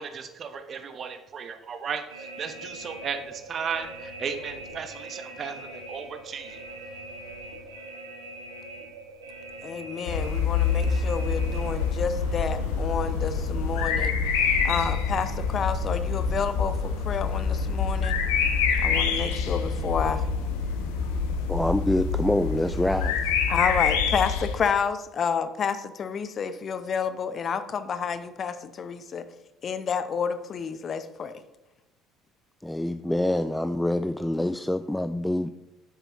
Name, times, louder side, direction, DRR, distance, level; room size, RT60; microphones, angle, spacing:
voice 1, 0.0-6.6, right 6 dB, 40° right, 8 dB, 0.9 m, -35 dB
sound 1, 2.1-21.3, right 3 dB, 80° right, 1.3 m, -43 dB
voice 2, 9.6-14.2 14.6-18.2 18.8-20.3 23.5-29.3 29.6-31.4, left 6 dB, 40° left, 11 dB, 0.7 m, -29 dB
sound 2, 10.1-24.6, left 5 dB, 70° left, 1.0 m, -26 dB
voice 3, 21.5-23.2 32.6-35.5, left 1 dB, 5° left, 11 dB, 0.3 m, -26 dB
10.5 x 7.8 x 3.0 m, 0.97 s
figure-of-eight pair, 55°, 0 cm